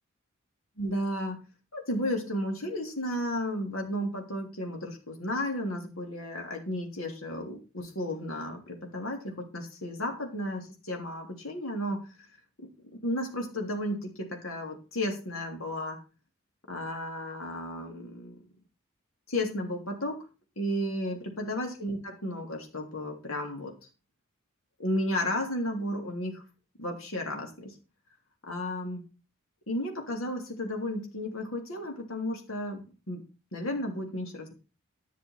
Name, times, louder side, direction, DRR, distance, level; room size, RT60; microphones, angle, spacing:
voice 1, 0.8-1.4 1.7-12.1 12.6-12.7 13.0-16.0 16.7-18.5 19.3-20.2 20.6-23.7 24.8-26.4 26.8-27.7 28.4-29.0 29.7-33.2 33.5-34.5, left 1 dB, 85° left, 2 dB, 3.3 m, -33 dB
11.0 x 6.7 x 5.8 m, 0.31 s
head